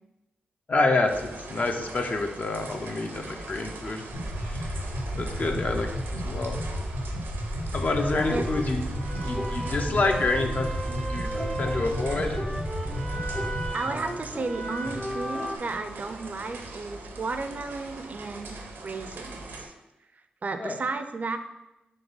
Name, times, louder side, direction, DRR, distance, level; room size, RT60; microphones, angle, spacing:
voice 1, 0.7-4.1 4.4-4.8 5.1-6.6 7.7-8.8 9.2-10.7 11.1-11.3 11.6-12.4 20.6-20.8, left 3 dB, 50° left, 5 dB, 0.6 m, -27 dB
sound 1, 1.1-19.7, right 2 dB, 90° right, 0.6 m, -42 dB
sound 2, 4.1-13.7, equal, 85° left, 0.8 m, -32 dB
sound 3, 8.0-15.6, right 1 dB, 10° left, 0.6 m, -35 dB
voice 2, 13.7-19.7 20.4-21.4, right 3 dB, 45° right, 8 dB, 0.4 m, -33 dB
3.6 x 2.9 x 3.9 m, 0.95 s
cardioid pair, 50°, 4 cm